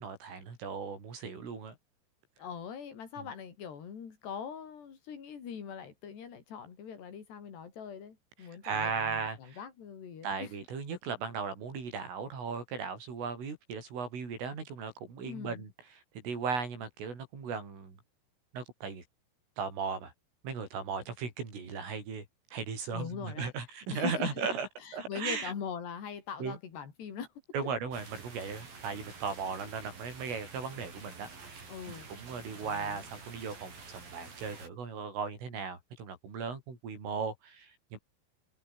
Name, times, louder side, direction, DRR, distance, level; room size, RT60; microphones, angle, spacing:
voice 1, 0.0-1.8 3.2-3.3 8.6-9.6 10.2-15.7 16.1-18.0 18.5-19.0 19.6-20.1 20.4-22.2 22.5-24.7 24.9-25.5 26.4-26.6 27.5-38.0, right 5 dB, 75° right, 9.7 m, -37 dB
voice 2, 2.4-10.5 15.2-15.6 22.9-23.5 23.9-24.3 24.8-27.3 31.7-32.1 32.6-33.1, left 7 dB, 55° left, 6.1 m, -42 dB
sound 1, 27.9-34.7, right 4 dB, 45° right, 8.2 m, -49 dB
omnidirectional pair, 5.8 m